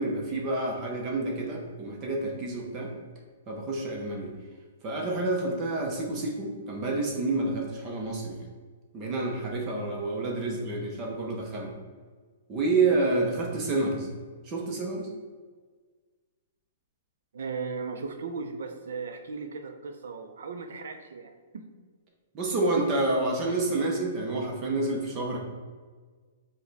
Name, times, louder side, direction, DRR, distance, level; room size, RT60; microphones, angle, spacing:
voice 1, 0.0-2.9 3.5-4.3 4.8-8.4 8.9-11.7 12.5-14.1 14.5-15.1 22.3-25.4, right 2 dB, 20° right, -1 dB, 0.6 m, -29 dB
voice 2, 12.9-13.2 17.3-21.7, right 4 dB, 70° right, 6 dB, 0.5 m, -37 dB
4.9 x 2.2 x 4.0 m, 1.5 s
hypercardioid pair, 180°, 0 cm